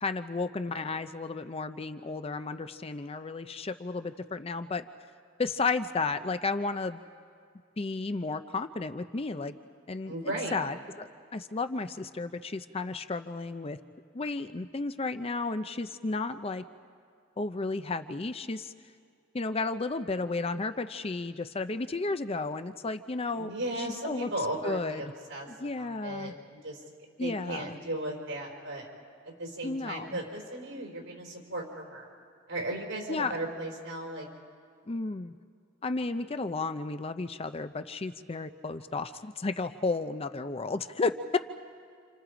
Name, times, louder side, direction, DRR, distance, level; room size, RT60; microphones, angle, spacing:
voice 1, 0.0-4.8 5.4-7.0 7.8-9.5 9.9-13.8 14.1-16.6 17.4-18.7 19.3-23.5 23.8-24.3 24.6-25.1 25.5-26.3 27.2-27.8 29.6-30.2 33.1-33.4 34.9-35.3 35.8-41.4, left 3 dB, 30° left, 10 dB, 0.6 m, -33 dB
voice 2, 10.1-10.5 23.4-25.5 25.7-26.8 27.2-28.9 29.2-32.1 32.5-34.3, right 1 dB, 85° right, 0 dB, 5.0 m, -36 dB
29.0 x 28.0 x 5.0 m, 2.2 s
head